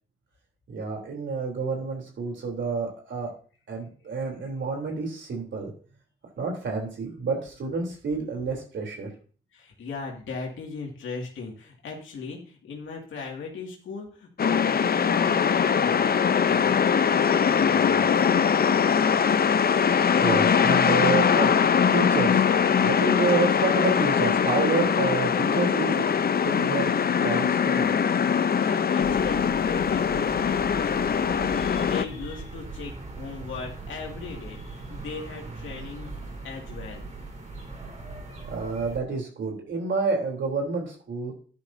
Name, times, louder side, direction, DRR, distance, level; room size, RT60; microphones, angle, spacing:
voice 1, 0.7-3.3 3.7-5.7 6.4-9.1 20.2-21.5 21.9-22.4 22.8-26.1 26.4-26.9 27.2-27.9 38.5-41.3, right 4 dB, 70° right, 1 dB, 3.5 m, -29 dB
voice 2, 9.5-18.3 28.5-36.2 36.4-37.0, left 4 dB, 75° left, -1 dB, 2.3 m, -38 dB
sound 1, 14.4-32.0, left 7 dB, 50° left, 0.7 m, -22 dB
sound 2, 29.0-39.0, right 3 dB, 35° right, 4.3 m, -40 dB
11.0 x 10.5 x 2.8 m, 0.41 s
supercardioid pair, 55°, 20 cm